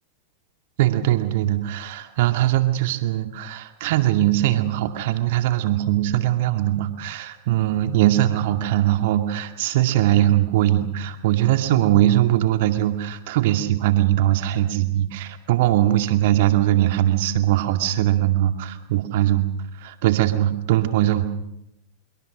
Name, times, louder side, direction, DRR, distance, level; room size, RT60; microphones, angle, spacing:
voice 1, 0.8-19.5 19.8-21.3, right 13 dB, 50° right, 7 dB, 2.2 m, -21 dB
26.0 x 23.5 x 6.4 m, 0.83 s
figure-of-eight pair, 90°, 0 cm